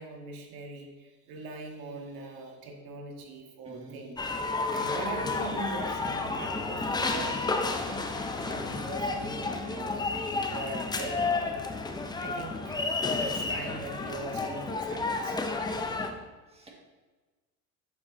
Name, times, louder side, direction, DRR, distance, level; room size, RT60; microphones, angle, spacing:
voice 1, 0.0-4.1 4.7-7.5 7.8-9.9 10.5-11.6 12.2-12.8 13.2-15.4, right 2 dB, 55° right, 2 dB, 1.7 m, -41 dB
voice 2, 3.6-4.1 16.5-16.7, right 3 dB, 15° right, 0 dB, 1.6 m, -49 dB
sound 1, 4.2-16.1, left 3 dB, 10° left, 0.5 m, -31 dB
8.7 x 7.3 x 2.6 m, 1.3 s
supercardioid pair, 115°, 43 cm